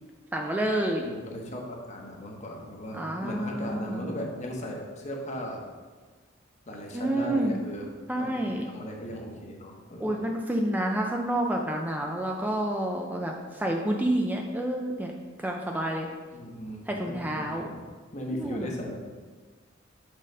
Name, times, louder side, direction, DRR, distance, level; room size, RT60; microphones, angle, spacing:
voice 1, 0.3-1.0 2.9-4.1 6.9-7.6 8.1-8.6 10.0-16.1 16.9-17.7 18.3-18.8, right 1 dB, 10° right, 1 dB, 0.4 m, -29 dB
voice 2, 1.0-5.7 6.7-7.9 8.2-10.2 16.3-17.8 18.1-19.1, equal, 35° left, 0 dB, 1.0 m, -37 dB
6.3 x 3.8 x 5.4 m, 1.4 s
head